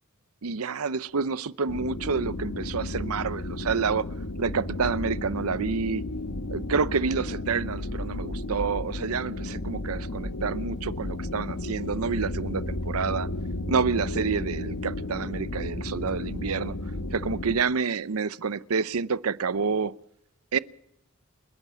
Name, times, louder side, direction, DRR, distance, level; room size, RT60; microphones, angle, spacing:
voice 1, 0.4-4.1 4.4-6.0 6.5-13.3 13.7-16.8 17.1-19.9 20.5-20.6, right 5 dB, 80° right, 0.7 m, -28 dB
sound 1, 1.7-17.6, left 2 dB, 90° left, 1.4 m, -33 dB
29.5 x 10.5 x 8.3 m
head